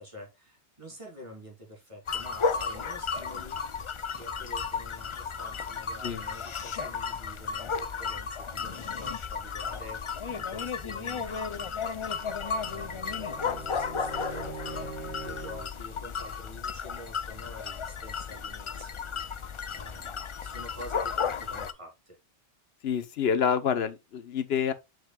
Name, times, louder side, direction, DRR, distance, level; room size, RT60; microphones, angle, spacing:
voice 1, 0.0-3.6 4.1-22.2, equal, 30° right, 3.0 m, -47 dB
sound 1, 2.1-21.7, left 5 dB, 45° left, 0.4 m, -34 dB
Bowed string instrument, 11.9-15.8, right 4 dB, 85° right, 4.0 m, -43 dB
voice 2, 22.8-24.7, left 7 dB, 65° left, 1.0 m, -27 dB
6.7 x 6.3 x 2.2 m
omnidirectional pair, 1.1 m